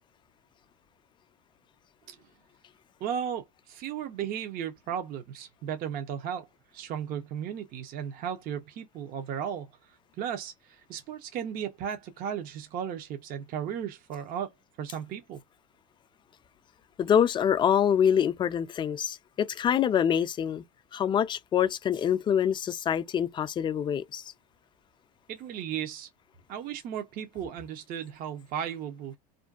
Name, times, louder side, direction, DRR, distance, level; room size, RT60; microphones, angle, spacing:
voice 1, 3.0-6.5 6.7-9.7 10.2-14.5 14.8-15.4 25.3-26.1 26.5-29.2, right 8 dB, 45° right, 0.6 m, -35 dB
voice 2, 17.0-20.6 20.9-24.3, left 8 dB, 25° left, 0.3 m, -25 dB
2.5 x 2.2 x 2.3 m
supercardioid pair, 100°, 20 cm